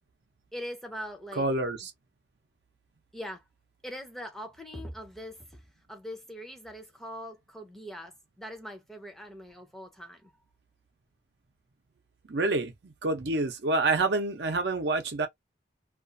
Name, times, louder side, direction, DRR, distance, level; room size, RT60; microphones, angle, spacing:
voice 1, 0.5-1.5 3.1-3.4 3.8-10.3, equal, ahead, 0.5 m, -42 dB
voice 2, 1.4-1.9 12.3-15.3, right 2 dB, 70° right, 0.7 m, -27 dB
2.4 x 2.4 x 2.5 m
head